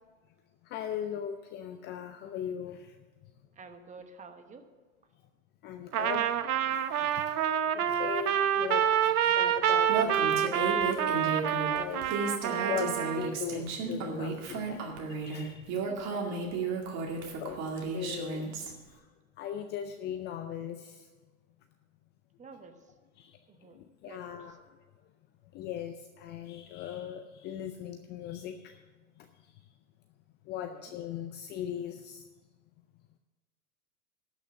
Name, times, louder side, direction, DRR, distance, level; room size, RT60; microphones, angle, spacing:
voice 1, 0.7-3.0 5.6-6.3 6.6-7.4 7.7-10.1 10.6-10.9 11.7-12.1 12.7-15.7 16.2-16.4 17.4-18.6 18.9-19.0 19.4-21.1 23.2-23.4 23.7-24.6 25.5-28.7 30.5-32.2, left 9 dB, 25° left, 7 dB, 0.5 m, -39 dB
voice 2, 3.6-4.6 9.9-10.2 11.9-12.0 15.7-16.2 22.4-22.8 23.5-23.8 24.0-24.4 30.7-30.9, right 4 dB, 15° right, 8 dB, 1.0 m, -50 dB
Trumpet, 5.9-13.3, right 9 dB, 80° right, 0.9 m, -27 dB
Female speech woman speaking, 9.9-18.7, right 4 dB, 35° right, 2.3 m, -34 dB
12.5 x 6.1 x 8.0 m, 1.3 s
hypercardioid pair, 115°, 44 cm